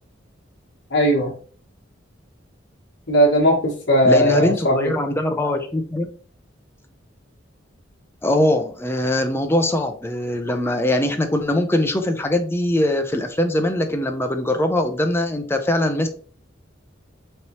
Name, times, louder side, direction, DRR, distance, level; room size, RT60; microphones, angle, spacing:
voice 1, 0.9-1.3 3.1-4.9, equal, 65° left, -3 dB, 1.2 m, -18 dB
voice 2, 4.0-6.1 8.2-16.1, left 1 dB, 15° left, 5 dB, 0.5 m, -21 dB
4.1 x 3.2 x 3.0 m, 0.43 s
head